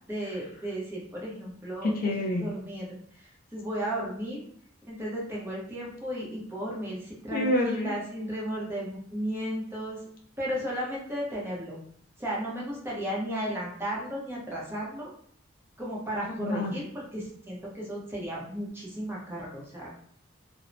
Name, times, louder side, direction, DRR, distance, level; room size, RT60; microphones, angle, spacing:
voice 1, 0.1-1.9 2.4-2.9 3.1-4.4 4.9-10.0 10.4-11.8 12.2-15.1 15.8-19.9, equal, 10° right, -5 dB, 0.7 m, -34 dB
voice 2, 1.8-2.5 7.3-7.9 16.2-16.7, left 1 dB, 45° left, 2 dB, 0.4 m, -27 dB
2.5 x 2.0 x 3.1 m, 0.63 s
head